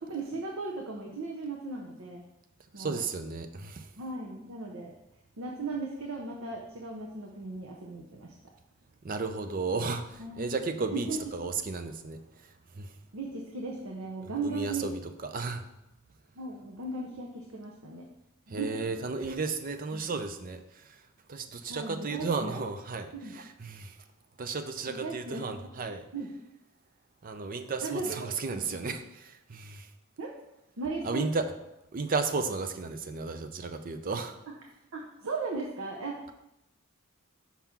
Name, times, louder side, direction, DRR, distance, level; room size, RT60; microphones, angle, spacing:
voice 1, 0.0-2.2 2.7-3.0 4.0-4.9 5.4-8.3 10.2-10.5 10.9-11.2 13.1-14.9 16.3-18.1 18.5-18.9 19.9-20.1 21.7-22.6 23.1-23.3 24.9-25.8 26.1-26.3 27.8-28.2 28.5-28.7 30.2-30.3 30.8-31.4 34.9-36.2, right 3 dB, 80° right, -1 dB, 0.8 m, -37 dB
voice 2, 2.8-3.9 9.0-12.9 14.4-15.7 18.5-24.0 24.4-26.0 27.2-29.9 31.0-31.5 31.9-34.4, right 4 dB, 40° right, 8 dB, 0.5 m, -34 dB
5.7 x 3.7 x 5.8 m, 0.86 s
head